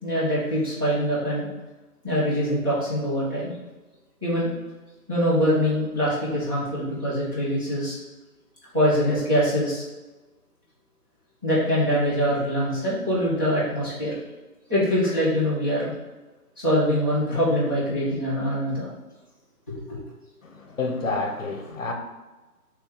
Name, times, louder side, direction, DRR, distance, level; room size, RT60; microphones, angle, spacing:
voice 1, 0.0-1.5 2.0-3.5 4.2-4.5 5.1-7.9 8.7-9.8 11.4-14.2 14.7-15.9 16.6-18.9 19.7-19.8, equal, 15° right, -10 dB, 0.7 m, -23 dB
voice 2, 20.4-21.9, left 3 dB, 55° left, 3 dB, 0.9 m, -29 dB
3.5 x 3.3 x 4.6 m, 1.2 s
figure-of-eight pair, 155°, 47 cm